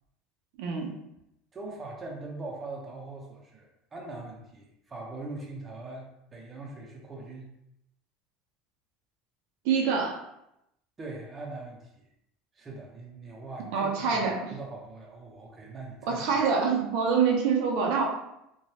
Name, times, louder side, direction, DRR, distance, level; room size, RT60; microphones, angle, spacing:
voice 1, 0.6-0.9 9.6-10.2 13.7-14.5 16.0-18.0, right 5 dB, 75° right, 0 dB, 0.6 m, -25 dB
voice 2, 1.5-7.5 11.0-12.0 12.5-14.2 14.5-16.2, right 2 dB, 20° right, -2 dB, 0.6 m, -41 dB
3.1 x 2.2 x 2.8 m, 0.82 s
cardioid pair, 140°, 0 cm